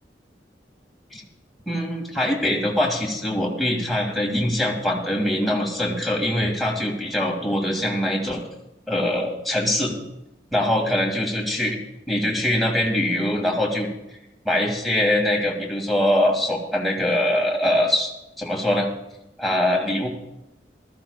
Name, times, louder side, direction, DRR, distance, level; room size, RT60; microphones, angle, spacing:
voice 1, 1.7-8.4 8.9-9.9 10.5-11.8 12.1-13.9 14.4-18.1 18.4-18.9 19.4-20.1, left 1 dB, ahead, -2 dB, 2.1 m, -23 dB
19.0 x 13.5 x 2.3 m, 0.91 s
head